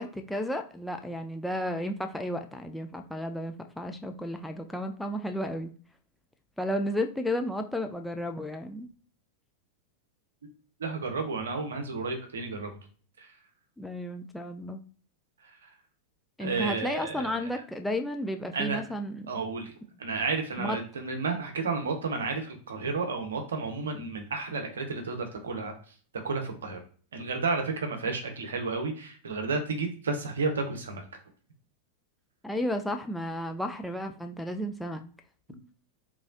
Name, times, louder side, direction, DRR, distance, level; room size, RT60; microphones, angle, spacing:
voice 1, 0.0-5.7 6.6-8.9 13.8-14.8 16.4-19.2 20.6-20.8 32.4-35.0, equal, 5° left, 4 dB, 0.4 m, -33 dB
voice 2, 10.8-12.7 13.2-13.3 16.4-17.5 18.5-18.8 19.3-19.7 20.0-25.7 26.1-26.8 27.1-31.0 35.5-35.6, right 4 dB, 65° right, 4 dB, 0.8 m, -32 dB
3.6 x 3.1 x 2.5 m, 0.43 s
figure-of-eight pair, 90°, 0 cm